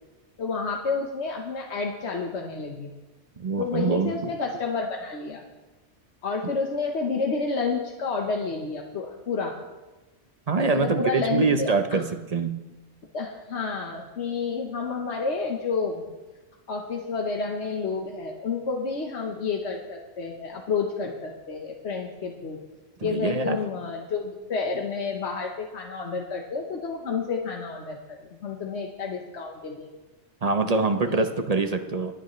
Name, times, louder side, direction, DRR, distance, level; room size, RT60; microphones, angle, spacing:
voice 1, 0.4-2.9 3.6-5.4 6.2-9.6 10.7-12.0 13.1-16.0 16.7-22.6 23.0-29.9 31.1-31.3, left 4 dB, 75° left, 1 dB, 1.4 m, -30 dB
voice 2, 3.4-4.3 6.4-6.5 10.5-12.7 23.0-23.6 30.4-32.2, right 4 dB, 40° right, 7 dB, 0.8 m, -25 dB
26.0 x 9.0 x 3.2 m, 1.1 s
omnidirectional pair, 1.2 m